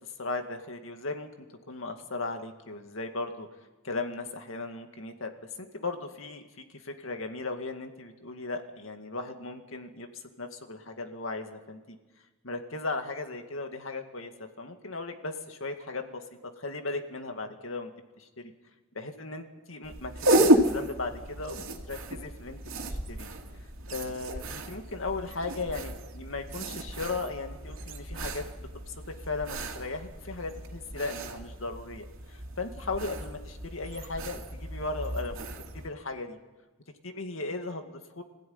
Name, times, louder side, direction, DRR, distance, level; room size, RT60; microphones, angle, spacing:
voice 1, 0.2-1.3 1.7-3.5 3.8-12.0 12.4-17.9 18.2-18.5 18.9-22.6 22.9-23.3 23.9-36.4 37.0-38.2, left 3 dB, 80° left, 5 dB, 2.2 m, -37 dB
sound 1, 19.8-35.9, right 1 dB, 80° right, 2.6 m, -32 dB
25.5 x 16.0 x 9.6 m, 1.2 s
head